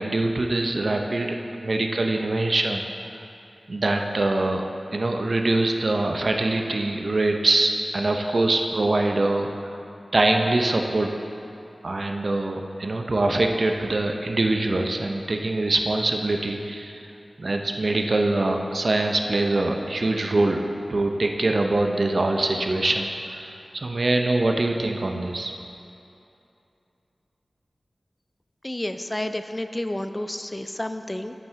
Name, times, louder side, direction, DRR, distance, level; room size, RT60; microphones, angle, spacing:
voice 1, 0.0-2.8 3.7-9.8 10.1-11.1 11.8-17.1 17.4-20.6 20.9-25.5, right 2 dB, 60° right, 3 dB, 0.6 m, -24 dB
voice 2, 28.6-31.3, left 1 dB, 20° left, 8 dB, 0.3 m, -30 dB
8.8 x 7.6 x 3.7 m, 2.8 s
wide cardioid pair, 60°, 0 cm